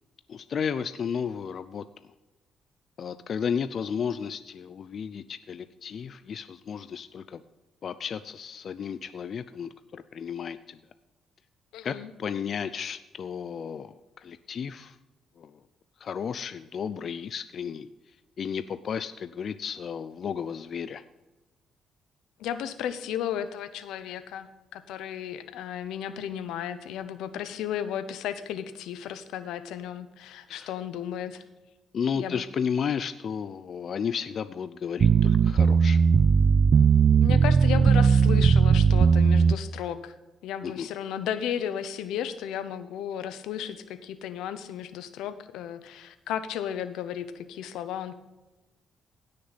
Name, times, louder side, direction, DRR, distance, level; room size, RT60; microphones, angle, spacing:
voice 1, 0.3-1.8 3.0-7.4 7.8-10.8 11.8-15.0 15.4-15.6 16.0-17.9 18.4-21.0 30.5-30.7 31.9-36.0 40.6-40.9, left 7 dB, 55° left, 13 dB, 0.5 m, -33 dB
voice 2, 11.7-12.1 22.4-31.4 32.1-32.4 37.2-40.1 40.4-48.2, left 9 dB, 90° left, 12 dB, 0.8 m, -34 dB
sound 1, 35.0-39.5, right 6 dB, 50° right, 0.4 m, -19 dB
16.5 x 6.5 x 4.1 m, 1.1 s
cardioid pair, 90°, 0 cm